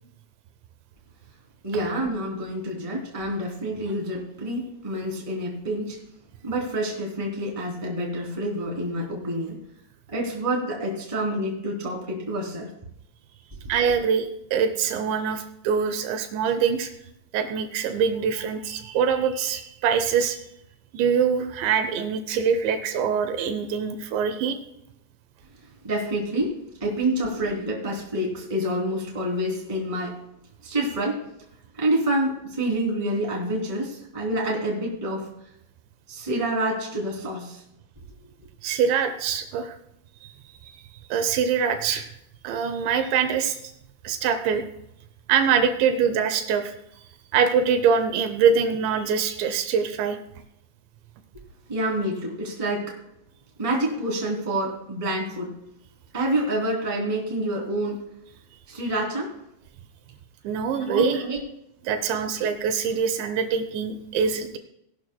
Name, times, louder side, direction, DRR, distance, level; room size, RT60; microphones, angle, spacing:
voice 1, 1.6-6.0 6.4-9.6 10.1-12.7 25.8-30.2 30.6-31.2 31.7-35.3 36.1-37.6 51.7-53.0 53.6-55.5 56.1-58.0 58.7-59.4 60.7-61.4, right 1 dB, 10° right, -2 dB, 1.8 m, -27 dB
voice 2, 13.7-16.9 17.3-20.4 20.9-24.6 38.6-39.7 40.2-40.3 40.7-40.8 41.1-42.1 42.4-43.7 44.0-44.6 45.3-46.7 47.3-50.2 60.4-61.2 61.9-64.6, right 6 dB, 80° right, 8 dB, 3.1 m, -24 dB
18.5 x 11.5 x 2.2 m, 0.79 s
omnidirectional pair, 5.3 m